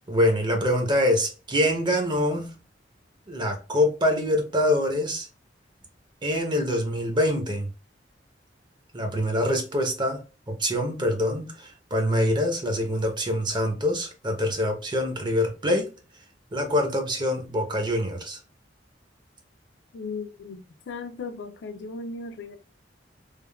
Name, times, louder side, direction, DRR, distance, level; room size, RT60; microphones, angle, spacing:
voice 1, 0.1-2.5 3.3-5.3 6.2-7.7 8.9-15.9 16.5-18.4, left 1 dB, 25° right, 0.7 m, -25 dB
voice 2, 19.9-22.6, left 4 dB, 70° left, 0.4 m, -36 dB
3.4 x 2.1 x 2.2 m
head